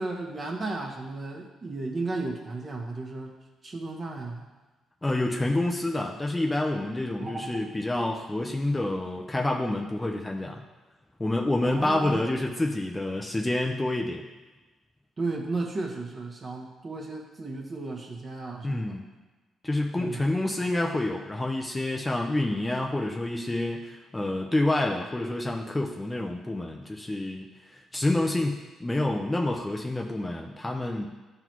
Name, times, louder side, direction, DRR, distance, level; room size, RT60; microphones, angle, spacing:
voice 1, 0.0-3.3 3.6-4.5 7.2-7.5 11.6-12.3 15.2-19.0 19.9-20.2, right 3 dB, 35° right, 0 dB, 1.4 m, -34 dB
voice 2, 5.0-10.6 11.2-14.2 18.6-19.0 19.6-27.4 27.9-31.1, left 2 dB, 15° left, 1 dB, 0.7 m, -28 dB
11.5 x 4.0 x 3.1 m, 1.2 s
cardioid pair, 90°, 0 cm